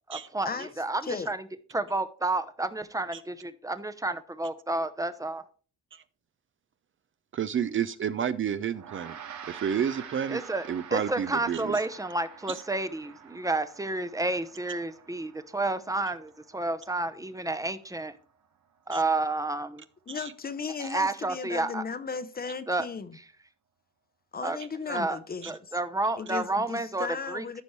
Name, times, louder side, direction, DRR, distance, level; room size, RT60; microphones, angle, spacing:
voice 1, 0.1-1.4 1.7-5.4 10.3-10.6 10.9-18.2 18.9-19.8 20.8-21.8 22.7-22.9 24.4-24.6 24.9-25.2 25.5-27.6, right 2 dB, 10° right, 0.8 m, -30 dB
voice 2, 1.0-1.3 20.1-23.2 24.3-25.8 26.1-27.6, left 5 dB, 30° left, 0.8 m, -36 dB
voice 3, 7.3-9.2 9.5-10.4 10.7-11.8 18.9-19.0 20.1-20.3 25.4-25.5, right 8 dB, 40° right, 0.5 m, -30 dB
Gong, 8.7-18.4, right 7 dB, 65° right, 1.4 m, -48 dB
14.0 x 5.2 x 3.2 m
cardioid pair, 90°, 30 cm